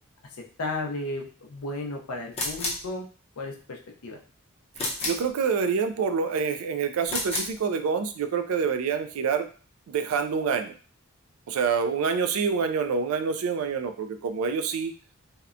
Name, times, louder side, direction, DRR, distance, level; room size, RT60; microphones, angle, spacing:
voice 1, 0.6-3.1 3.4-4.2, left 2 dB, 85° left, 1 dB, 0.5 m, -34 dB
sound 1, 2.3-2.9 4.8-5.3 7.0-7.6, left 2 dB, 25° left, 0.6 m, -30 dB
voice 2, 5.0-9.5 9.9-10.7 11.5-14.9, right 5 dB, 75° right, 8 dB, 0.3 m, -27 dB
2.7 x 2.1 x 2.4 m, 0.40 s
head